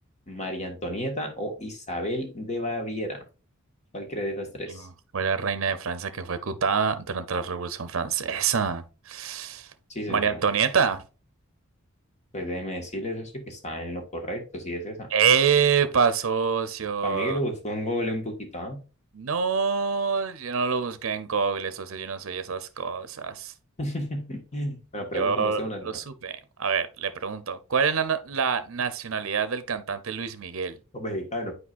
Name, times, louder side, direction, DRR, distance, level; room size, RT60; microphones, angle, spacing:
voice 1, 0.3-3.2 3.9-4.9 9.9-10.4 12.3-15.1 17.0-18.8 23.8-26.0 30.9-31.5, equal, 35° left, 1.6 m, -32 dB
voice 2, 5.1-9.7 10.1-11.0 15.1-17.4 19.1-23.5 25.1-30.8, right 6 dB, 70° right, 0.7 m, -26 dB
8.6 x 4.8 x 2.5 m
head